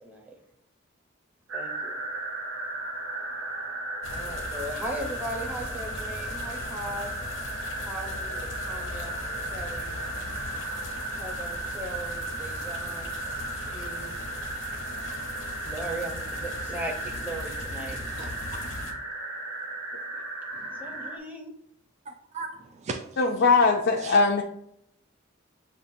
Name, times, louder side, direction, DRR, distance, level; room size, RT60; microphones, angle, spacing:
voice 1, 0.0-0.4 1.5-2.0 4.1-7.1 7.8-9.2 9.5-9.9 11.2-13.1 13.5-14.1 15.6-18.0 20.7-21.5, right 1 dB, 10° right, 0 dB, 0.8 m, -38 dB
sound 1, 1.5-21.2, right 2 dB, 75° right, 0.9 m, -35 dB
sound 2, 4.0-18.9, left 3 dB, 90° left, 0.9 m, -39 dB
voice 2, 17.9-18.3 18.6-18.7 20.5-21.1 22.1-23.2 24.0-24.2, right 4 dB, 35° right, 3 dB, 0.4 m, -39 dB
voice 3, 23.2-24.4, left 4 dB, 60° left, -1 dB, 0.5 m, -20 dB
7.1 x 2.5 x 2.6 m, 0.74 s
head